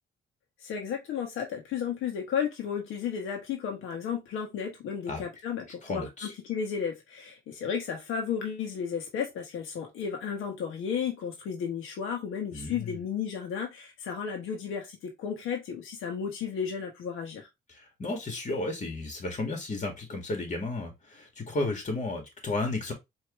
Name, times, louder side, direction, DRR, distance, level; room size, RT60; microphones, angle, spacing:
voice 1, 0.6-17.5, left 7 dB, 85° left, 1.1 m, -33 dB
voice 2, 5.8-6.3 12.5-13.0 17.7-22.9, left 2 dB, 40° left, 2.0 m, -33 dB
4.6 x 2.8 x 3.0 m
cardioid pair, 90°, 20 cm